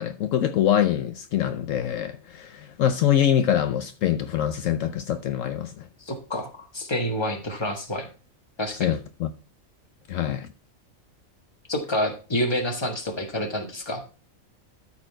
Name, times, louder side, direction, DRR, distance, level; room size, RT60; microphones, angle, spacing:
voice 1, 0.0-5.9 8.8-9.3 10.1-10.5, left 10 dB, 70° left, 1.0 m, -24 dB
voice 2, 6.0-8.1 8.6-9.0 11.7-14.0, equal, 20° left, 1.5 m, -28 dB
13.0 x 4.5 x 4.4 m
omnidirectional pair, 1.4 m